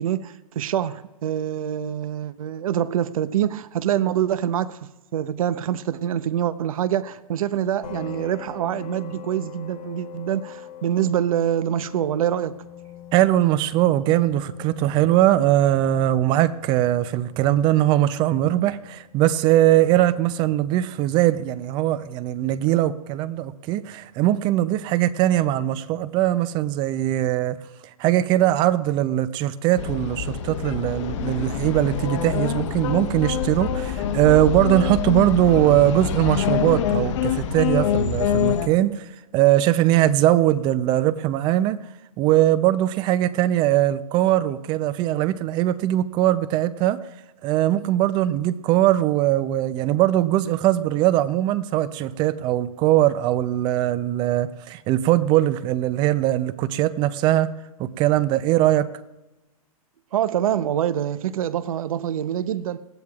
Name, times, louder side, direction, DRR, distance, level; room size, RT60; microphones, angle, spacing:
voice 1, 0.0-4.8 5.1-12.5 60.1-62.8, right 10 dB, 65° right, 0.8 m, -25 dB
sound 1, 7.8-21.1, left 10 dB, 80° left, 2.6 m, -43 dB
voice 2, 13.1-27.6 28.0-39.1 39.3-41.8 42.2-47.0 47.4-57.5 57.8-58.9, right 13 dB, 25° right, 0.5 m, -20 dB
sound 2, 29.8-38.7, left 8 dB, 50° left, 1.1 m, -25 dB
19.5 x 14.0 x 2.4 m
hypercardioid pair, 145°, 19 cm